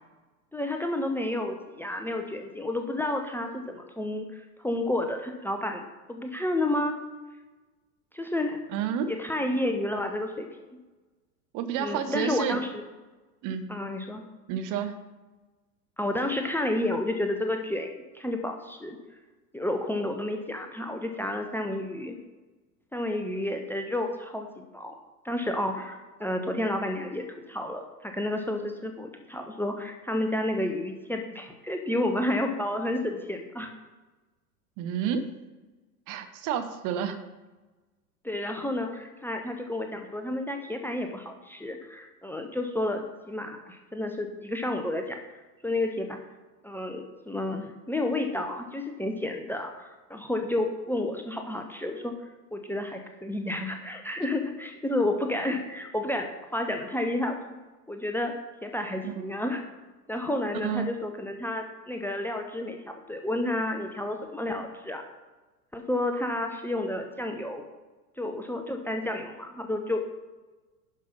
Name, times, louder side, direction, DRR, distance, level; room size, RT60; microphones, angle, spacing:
voice 1, 0.5-7.0 8.1-8.6 9.1-10.5 11.8-12.7 13.7-14.2 16.0-17.9 18.1-19.0 19.5-22.2 22.9-24.9 25.2-33.7 38.2-45.2 45.6-46.2 46.6-52.2 52.5-57.4 57.9-58.3 58.6-59.6 60.1-65.0 65.7-67.6 68.2-70.1, left 1 dB, 5° left, 4 dB, 0.9 m, -31 dB
voice 2, 8.7-9.1 11.5-12.6 13.4-13.8 14.5-14.9 34.8-35.3 36.1-37.2 59.0-59.4 60.6-60.9, right 8 dB, 40° right, 8 dB, 1.1 m, -30 dB
11.0 x 5.6 x 5.5 m, 1.2 s
figure-of-eight pair, 90°, 47 cm